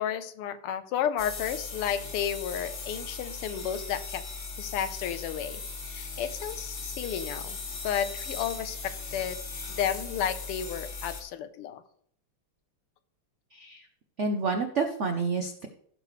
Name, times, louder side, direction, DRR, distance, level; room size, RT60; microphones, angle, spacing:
voice 1, 0.0-4.2 4.6-7.6 7.8-9.4 9.7-11.8, left 9 dB, 85° left, 11 dB, 1.7 m, -32 dB
sound 1, 1.2-11.2, left 4 dB, 50° left, 2.3 m, -38 dB
voice 2, 13.5-13.9 14.2-15.7, right 4 dB, 80° right, 5 dB, 0.6 m, -29 dB
15.5 x 6.6 x 3.2 m, 0.63 s
omnidirectional pair, 2.4 m